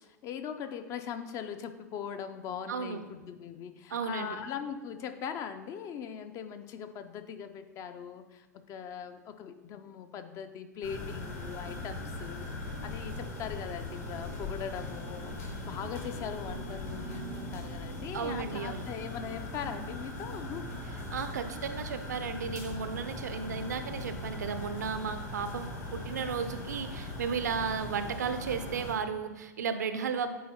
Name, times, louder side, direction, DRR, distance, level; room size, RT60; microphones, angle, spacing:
voice 1, 0.0-20.9, left 8 dB, 35° left, 9 dB, 0.4 m, -40 dB
voice 2, 2.7-3.0 3.9-4.4 18.1-18.9 21.1-30.3, right 6 dB, 70° right, 9 dB, 0.5 m, -34 dB
sound 1, 10.8-28.9, left 1 dB, 65° left, 1.7 m, -40 dB
9.3 x 4.0 x 2.8 m, 1.1 s
figure-of-eight pair, 90°, 9 cm